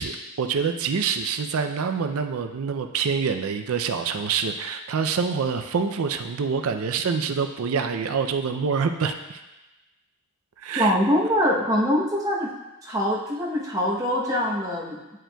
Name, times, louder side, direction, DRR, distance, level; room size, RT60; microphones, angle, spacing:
voice 1, 0.0-9.4 10.6-11.0, right 5 dB, 70° right, 7 dB, 0.4 m, -26 dB
voice 2, 10.8-12.5 12.8-15.2, equal, 15° right, -3 dB, 0.8 m, -23 dB
8.9 x 4.7 x 2.2 m, 1.1 s
head